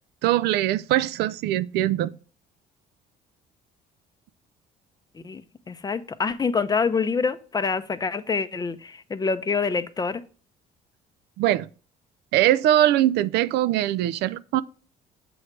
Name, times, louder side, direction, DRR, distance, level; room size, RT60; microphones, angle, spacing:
voice 1, 0.2-2.1 11.4-11.7 12.3-14.6, right 13 dB, 80° right, 0.4 m, -22 dB
voice 2, 5.7-10.2, left 5 dB, 25° left, 0.5 m, -26 dB
7.8 x 3.2 x 5.9 m
cardioid pair, 110°, 17 cm